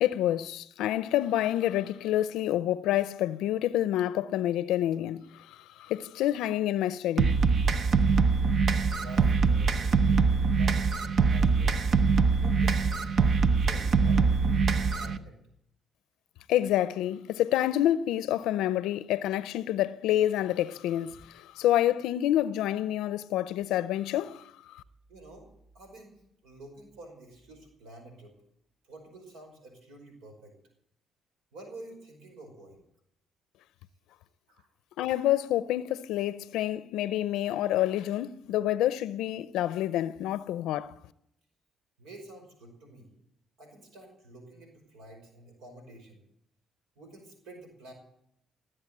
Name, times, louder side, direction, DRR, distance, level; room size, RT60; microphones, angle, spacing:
voice 1, 0.0-7.4 16.5-24.8 35.0-40.9, left 13 dB, 90° left, 0.5 m, -28 dB
sound 1, 7.2-15.2, right 4 dB, 55° right, 0.9 m, -23 dB
voice 2, 8.9-15.4 21.1-21.2 25.1-25.5 25.7-28.3 28.8-30.5 31.5-32.8 34.5-34.7 42.0-43.1 43.6-46.2 47.0-47.9, right 1 dB, 90° right, 5.3 m, -50 dB
18.5 x 7.9 x 9.0 m
cardioid pair, 75°, 0 cm